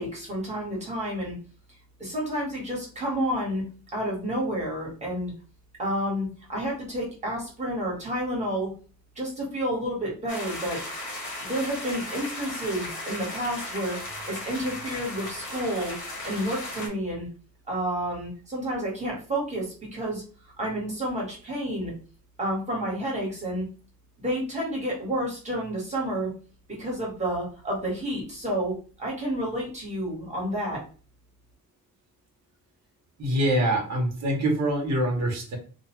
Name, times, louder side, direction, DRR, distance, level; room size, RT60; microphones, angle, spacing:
voice 1, 0.0-1.3 2.0-3.6 3.9-5.3 5.8-8.7 9.1-10.8 11.4-14.0 14.3-15.9 16.2-17.3 17.7-20.2 20.6-21.9 22.4-23.6 24.2-26.3 26.7-30.8, equal, 20° right, -3 dB, 1.3 m, -30 dB
sound 1, 10.3-16.9, left 1 dB, 80° left, 1.2 m, -36 dB
voice 2, 33.2-35.6, right 1 dB, 45° right, 0 dB, 0.9 m, -25 dB
2.6 x 2.3 x 3.0 m, 0.38 s
wide cardioid pair, 150°, 36 cm